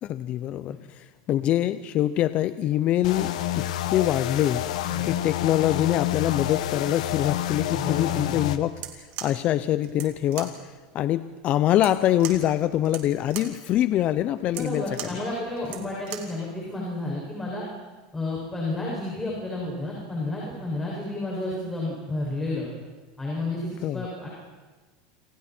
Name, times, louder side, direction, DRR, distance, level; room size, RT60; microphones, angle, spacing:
voice 1, 0.0-4.7 5.0-10.6 10.9-15.1 23.8-24.0, left 12 dB, 40° left, 12 dB, 0.8 m, -24 dB
sound 1, 3.0-8.6, left 13 dB, 85° left, 1.5 m, -28 dB
voice 2, 4.9-5.2 7.7-8.4 10.4-10.5 14.5-17.7 18.1-22.7 23.2-24.3, left 2 dB, 10° left, -4 dB, 6.8 m, -31 dB
sound 2, 8.7-16.4, right 11 dB, 55° right, 3.6 m, -41 dB
28.0 x 28.0 x 4.6 m, 1.3 s
supercardioid pair, 140°, 4 cm